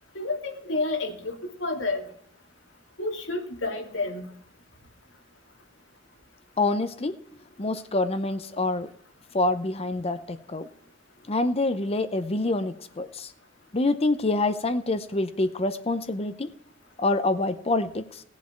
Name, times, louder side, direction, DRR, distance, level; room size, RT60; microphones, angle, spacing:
voice 1, 0.1-2.1 3.0-4.2, left 2 dB, 80° left, 3 dB, 2.6 m, -30 dB
voice 2, 6.6-7.1 7.6-8.9 9.3-10.7 11.3-13.3 13.7-16.5 17.0-18.2, left 2 dB, 30° left, 11 dB, 0.7 m, -26 dB
19.0 x 7.4 x 4.5 m, 0.64 s
head